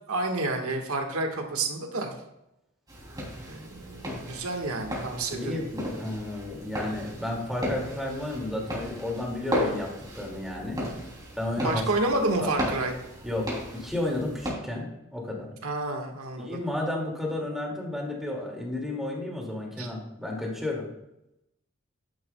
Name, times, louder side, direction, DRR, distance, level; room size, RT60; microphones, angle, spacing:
voice 1, 0.1-2.1 3.4-5.6 11.5-12.9 15.6-16.6 19.8-19.9, right 2 dB, 85° right, 3 dB, 1.5 m, -29 dB
sound 1, 2.9-14.5, equal, 20° right, 2.8 m, -35 dB
voice 2, 5.3-10.8 11.4-11.8 12.4-12.5 13.2-15.5 16.4-20.9, left 1 dB, ahead, -2 dB, 2.1 m, -32 dB
10.5 x 9.4 x 2.2 m, 0.85 s
head